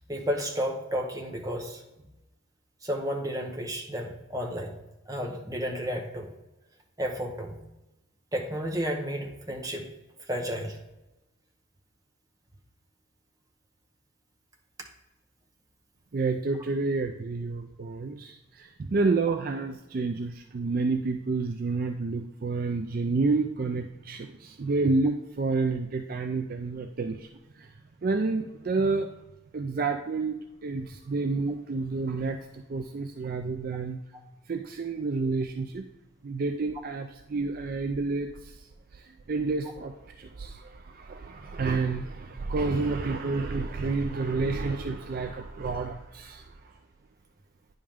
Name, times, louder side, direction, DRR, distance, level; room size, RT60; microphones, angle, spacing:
voice 1, 0.1-1.8 2.8-4.8 5.1-6.3 7.0-7.6 8.3-9.9 10.3-10.8, equal, 15° right, 2 dB, 1.0 m, -32 dB
voice 2, 16.1-29.1 29.5-34.0 34.5-35.8 36.2-46.8, right 3 dB, 45° right, 6 dB, 0.4 m, -30 dB
9.6 x 5.2 x 3.6 m, 0.98 s
head